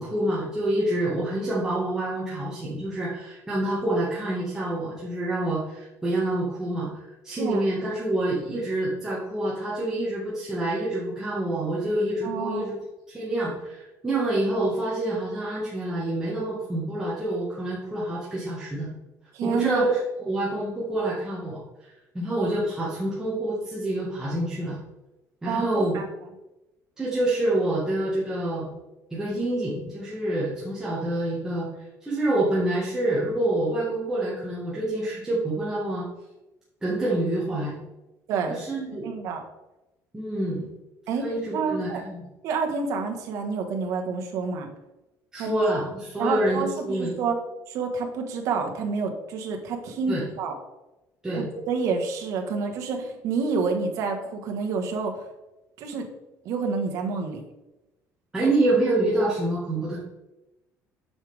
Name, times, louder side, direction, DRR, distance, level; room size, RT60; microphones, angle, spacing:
voice 1, 0.0-12.7 13.1-18.9 19.4-20.0 20.2-21.6 22.1-24.8 25.4-26.0 27.0-28.7 29.1-31.7 32.0-36.0 36.8-37.8 38.5-39.1 40.1-40.7 41.2-42.2 45.3-47.2 50.1-50.2 51.2-51.5 58.3-60.0, right 1 dB, 10° right, -8 dB, 1.7 m, -27 dB
voice 2, 12.2-12.7 19.3-19.8 25.5-26.0 38.3-38.6 39.0-39.4 41.1-42.0 42.4-44.7 45.4-45.6 46.2-47.4 47.7-50.6 51.3-55.2 55.8-56.1 56.4-57.4, right 5 dB, 60° right, 3 dB, 1.4 m, -28 dB
8.6 x 6.6 x 3.5 m, 0.97 s
cardioid pair, 165°, 6 cm